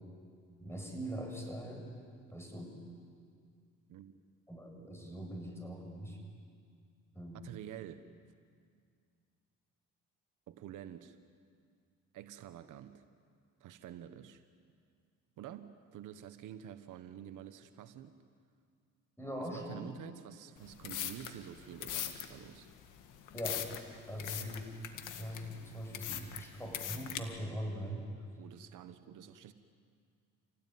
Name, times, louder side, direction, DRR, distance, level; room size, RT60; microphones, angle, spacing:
voice 1, 0.6-1.9 2.3-2.8 4.5-6.2 7.2-7.4 19.2-19.9 23.3-23.7 24.1-24.7 25.1-28.1, equal, 10° left, 1 dB, 7.0 m, -42 dB
voice 2, 7.3-8.0 10.5-11.2 12.1-13.1 13.6-14.4 15.4-18.2 19.4-22.7 24.3-24.6 28.4-29.5, right 10 dB, 85° right, 10 dB, 1.2 m, -49 dB
sound 1, 20.6-27.2, left 10 dB, 90° left, 1.9 m, -41 dB
28.0 x 18.0 x 9.5 m, 2.2 s
cardioid pair, 90°, 30 cm